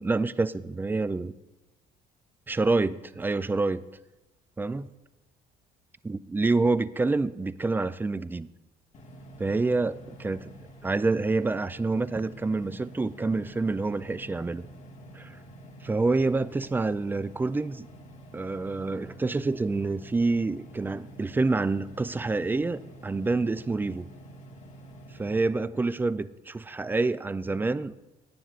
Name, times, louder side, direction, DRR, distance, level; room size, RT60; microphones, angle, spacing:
voice 1, 0.0-1.3 2.5-3.8 4.6-4.9 6.1-8.5 9.4-10.5 10.8-14.6 15.1-15.4 15.8-17.9 18.3-24.1 25.2-27.9, right 3 dB, 10° right, 15 dB, 0.3 m, -27 dB
sound 1, 8.9-25.5, right 1 dB, 45° left, 1.8 m, -48 dB
17.0 x 9.2 x 2.4 m, 1.0 s
cardioid pair, 110°, 17 cm